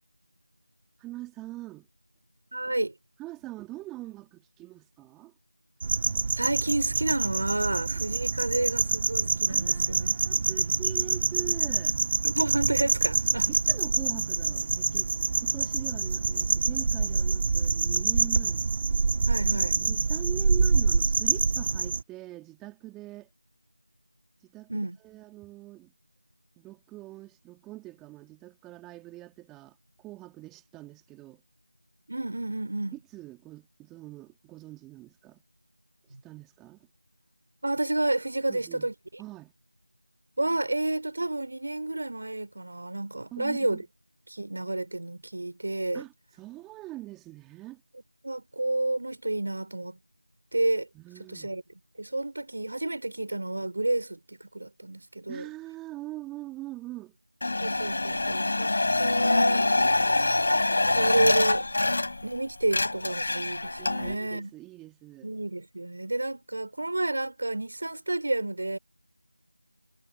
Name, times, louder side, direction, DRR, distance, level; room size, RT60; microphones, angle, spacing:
voice 1, 1.0-1.9 2.6-2.7 3.2-5.3 9.5-12.1 13.5-15.1 15.4-18.6 19.5-23.3 24.4-25.9 26.6-31.4 33.1-35.4 36.2-36.9 38.5-38.9 39.2-39.5 43.3-43.8 45.9-47.8 50.9-51.6 55.3-57.2 63.8-65.3, right 18 dB, 5° right, 2.2 m, -43 dB
voice 2, 2.5-2.9 6.4-10.4 12.2-13.5 19.3-19.8 24.7-25.0 32.1-32.9 36.1-36.2 37.6-39.2 40.4-43.8 44.3-46.0 48.2-50.0 50.5-50.9 51.3-51.6 52.0-55.5 57.6-58.7 59.0-59.7 60.7-61.6 62.2-64.5 65.2-68.8, right 2 dB, 50° right, 4.5 m, -30 dB
sound 1, 5.8-22.0, right 4 dB, 25° right, 1.6 m, -26 dB
sound 2, 57.4-62.4 62.6-64.1, left 2 dB, 45° left, 7.8 m, -25 dB
figure-of-eight pair, 170°, 0 cm